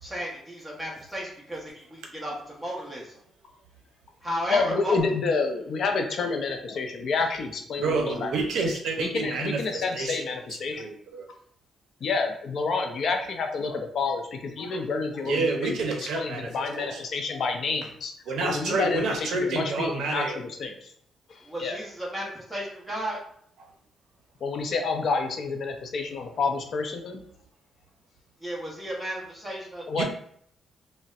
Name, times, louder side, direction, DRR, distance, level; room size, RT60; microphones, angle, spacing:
voice 1, 0.0-3.2 4.2-5.0 21.4-23.2 28.4-30.0, equal, ahead, -4 dB, 0.9 m, -34 dB
voice 2, 4.5-8.3 9.0-10.9 12.0-15.8 16.1-18.1 18.4-20.9 21.3-21.8 24.4-27.2 29.9-30.0, left 4 dB, 55° left, 4 dB, 0.4 m, -29 dB
voice 3, 7.8-10.2 10.7-11.3 15.2-16.5 16.8-17.0 18.3-20.4 29.9-30.0, right 3 dB, 80° right, 3 dB, 0.5 m, -28 dB
4.0 x 2.1 x 2.4 m, 0.64 s
cardioid pair, 130°, 0 cm